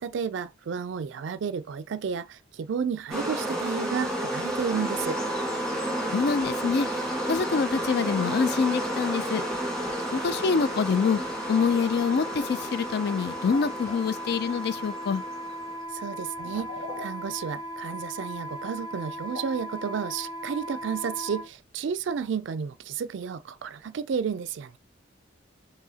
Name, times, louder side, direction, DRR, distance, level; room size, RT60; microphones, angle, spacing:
voice 1, 0.0-5.2 15.9-16.7 17.0-24.8, right 6 dB, 65° right, 0.3 m, -32 dB
sound 1, 3.1-15.7, right 1 dB, 5° left, 1.6 m, -32 dB
Wind instrument woodwind instrument, 4.7-21.5, equal, 20° left, 0.8 m, -38 dB
voice 2, 6.1-6.9 7.3-9.4 10.1-11.2 11.5-15.2, left 5 dB, 55° left, 0.4 m, -25 dB
sound 2, 12.0-12.3 12.6-13.2 13.5-14.1 15.1-15.2 15.6-15.8 16.3-17.9 18.8-19.1 19.3-19.7 20.4-20.5 20.8-20.9 21.5-21.6, left 2 dB, 80° left, 1.2 m, -43 dB
4.8 x 2.7 x 2.8 m
head